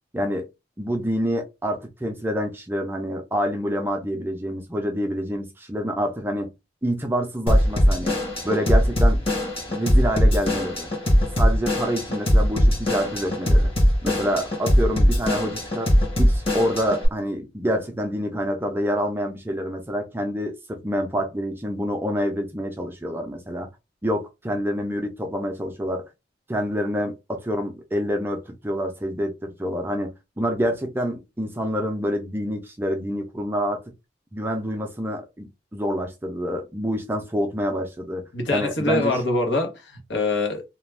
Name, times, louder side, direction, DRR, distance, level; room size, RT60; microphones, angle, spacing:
voice 1, 0.1-0.5 0.8-6.5 6.8-8.2 8.4-9.2 9.7-10.9 11.3-13.7 14.0-15.9 16.2-23.7 24.0-26.1 26.5-30.1 30.4-33.8 34.3-39.2, equal, 10° right, 0.4 m, -27 dB
Drum kit / Drum, 7.5-17.1, equal, 30° left, 1.0 m, -20 dB
voice 2, 38.3-40.6, left 2 dB, 85° left, 1.0 m, -24 dB
2.4 x 2.2 x 3.2 m
head